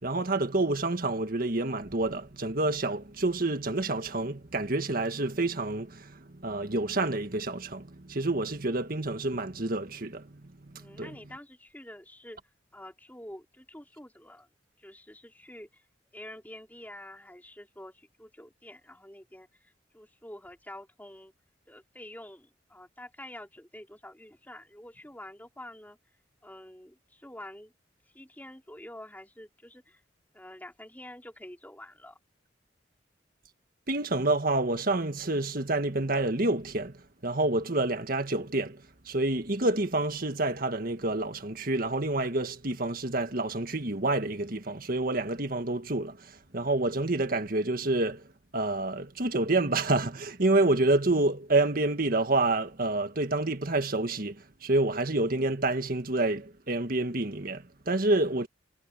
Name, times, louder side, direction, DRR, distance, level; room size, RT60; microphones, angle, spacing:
voice 1, 0.0-10.4 10.7-11.1 33.9-36.9 37.2-46.2 46.5-48.2 48.5-54.4 54.6-58.5, right 2 dB, 55° right, 1.7 m, -28 dB
voice 2, 10.8-12.4 12.7-14.5 14.8-15.9 16.1-21.3 21.7-26.0 26.4-27.7 28.1-30.0 30.3-32.2, left 1 dB, 10° left, 4.4 m, -47 dB
head